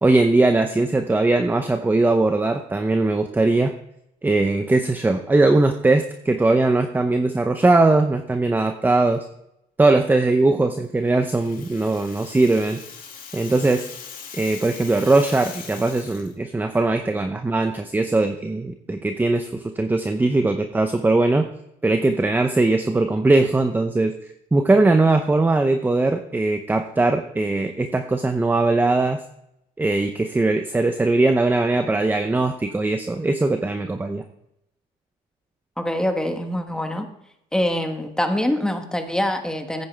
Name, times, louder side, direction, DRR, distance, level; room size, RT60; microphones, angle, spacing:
voice 1, 0.0-3.7 4.2-9.2 9.8-12.8 13.3-13.8 14.3-21.5 21.8-24.1 24.5-29.2 29.8-34.2, right 2 dB, 10° right, 7 dB, 0.7 m, -20 dB
Rattle (instrument), 11.1-16.3, left 7 dB, 55° left, 2.3 m, -40 dB
voice 2, 35.8-37.1 37.5-39.9, left 1 dB, 5° left, 5 dB, 1.4 m, -24 dB
14.0 x 9.4 x 3.4 m, 0.81 s
cardioid pair, 110°, 17 cm